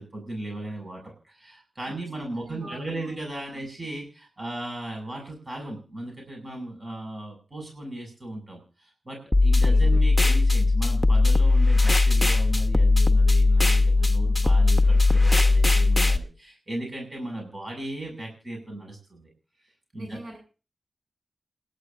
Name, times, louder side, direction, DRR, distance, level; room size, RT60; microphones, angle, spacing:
voice 1, 0.0-19.3 19.9-20.2, right 1 dB, 35° right, 1 dB, 6.8 m, -37 dB
voice 2, 1.9-3.1 3.5-3.7 9.7-10.0 19.9-20.4, right 1 dB, 70° right, 1 dB, 7.9 m, -43 dB
sound 1, 9.3-16.2, left 3 dB, 10° left, 1.2 m, -19 dB
28.5 x 11.5 x 2.7 m, 0.35 s
cardioid pair, 55°, 0 cm